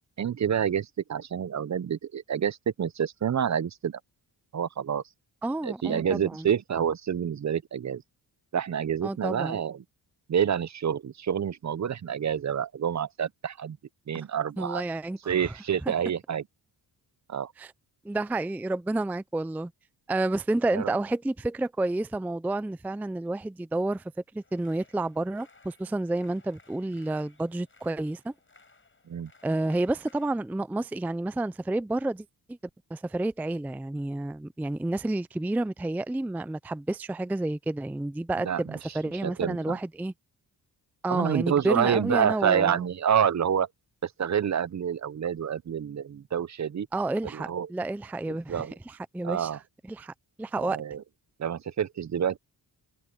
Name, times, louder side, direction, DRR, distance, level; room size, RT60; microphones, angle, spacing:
voice 1, 0.2-4.0 4.5-5.0 5.6-8.0 8.5-9.8 10.3-13.8 14.1-14.8 15.3-16.4 17.3-17.5 20.7-20.9 29.1-29.3 38.4-38.8 39.2-39.8 41.1-43.7 44.0-46.9 47.3-47.7 48.3-48.7 49.2-49.6 50.6-51.0 51.4-52.4, right 8 dB, 40° right, 0.6 m, -28 dB
voice 2, 5.4-6.5 9.0-9.6 14.6-15.4 15.9-16.0 17.6-17.7 18.0-19.7 20.1-24.0 24.3-28.3 29.4-32.3 32.9-40.1 41.0-42.8 46.9-49.5 49.9-50.8, right 2 dB, 5° right, 0.4 m, -30 dB
sound 1, 24.4-30.3, left 3 dB, 30° left, 6.1 m, -60 dB
cardioid pair, 100°, 42 cm